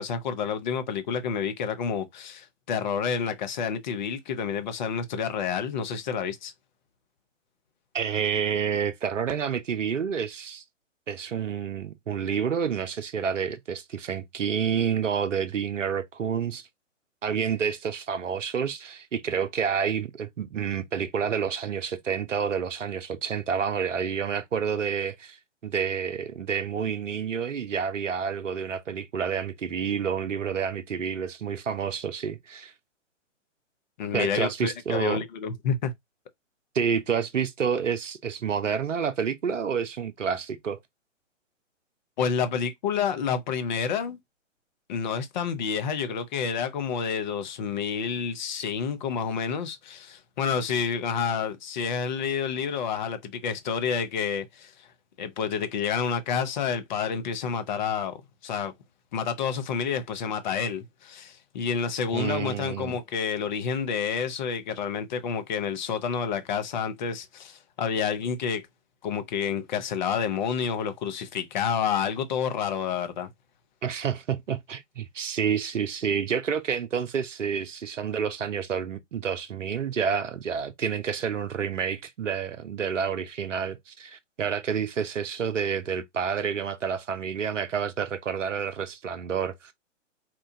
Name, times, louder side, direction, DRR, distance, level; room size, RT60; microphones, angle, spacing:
voice 1, 0.0-6.5 34.0-35.9 42.2-44.2 44.9-54.9 55.2-58.2 58.4-58.7 59.1-68.6 69.0-73.3, left 6 dB, 35° left, 0.8 m, -29 dB
voice 2, 7.9-10.6 11.1-16.7 17.2-25.4 25.6-32.7 34.1-35.2 36.7-40.8 62.1-63.0 73.8-89.7, right 7 dB, 75° right, 0.7 m, -29 dB
4.3 x 2.3 x 2.7 m
figure-of-eight pair, 125°, 38 cm